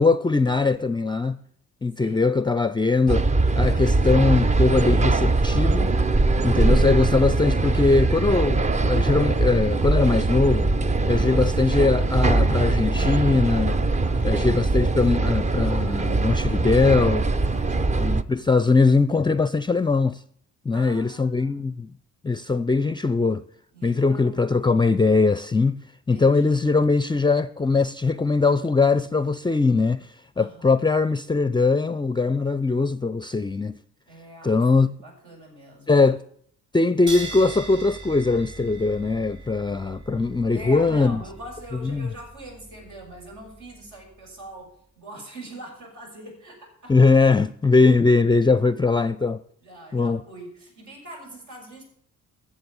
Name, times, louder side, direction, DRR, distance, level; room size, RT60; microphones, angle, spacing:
voice 1, 0.0-1.4 1.8-3.3 3.6-6.0 6.4-10.7 11.1-13.8 14.2-17.3 17.9-20.2 20.7-21.9 22.2-23.4 23.8-25.8 26.1-30.1 30.4-33.8 34.4-34.9 35.9-36.2 36.7-41.2 41.8-42.1 46.9-49.4 49.9-50.2, left 3 dB, 15° left, 0.5 m, -21 dB
voice 2, 2.0-2.4 14.0-14.5 17.4-18.3 20.7-21.6 23.7-24.5 26.1-26.6 30.4-30.8 34.1-36.1 40.1-47.0 49.6-51.8, right 1 dB, 75° right, 6.6 m, -43 dB
sound 1, 3.1-18.2, right 3 dB, 25° right, 0.6 m, -21 dB
sound 2, 37.1-44.0, right 3 dB, 40° right, 7.0 m, -40 dB
12.5 x 7.6 x 8.7 m
cardioid pair, 90°, 30 cm